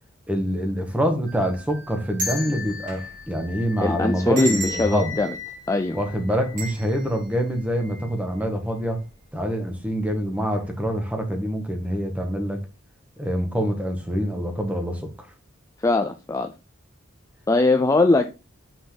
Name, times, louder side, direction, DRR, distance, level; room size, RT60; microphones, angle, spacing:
voice 1, 0.3-5.2 5.9-9.0 9.3-12.6 13.2-15.0, equal, 5° right, 1.4 m, -25 dB
sound 1, 1.3-8.4 8.8-8.9 9.8-10.1 10.5-10.6, equal, 40° right, 2.4 m, -35 dB
voice 2, 3.8-5.4 5.7-6.0 15.8-16.5 17.5-18.3, left 2 dB, 15° left, 0.4 m, -20 dB
5.9 x 4.0 x 5.1 m
head